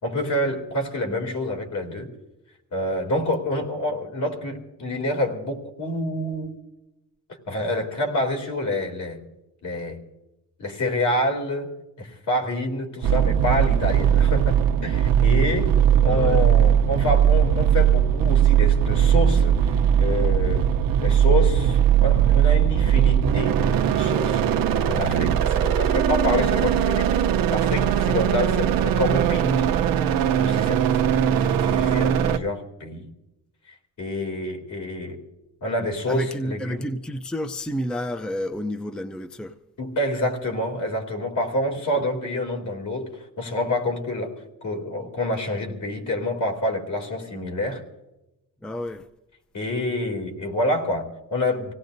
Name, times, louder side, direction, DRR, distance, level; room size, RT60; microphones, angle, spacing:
voice 1, 0.0-2.1 2.7-6.6 7.5-9.2 9.6-10.0 10.6-11.7 12.0-15.7 16.0-20.7 21.0-24.4 24.7-29.6 30.4-33.1 34.0-35.2 35.6-36.9 39.8-44.3 44.6-47.8 49.5-51.7, left 1 dB, 60° left, 3.1 m, -27 dB
sound 1, 13.0-32.4, right 9 dB, 85° right, 0.9 m, -20 dB
voice 2, 16.1-16.5 36.1-39.6 48.6-49.1, equal, 5° left, 0.5 m, -30 dB
26.0 x 17.5 x 2.7 m
cardioid pair, 145°, 34 cm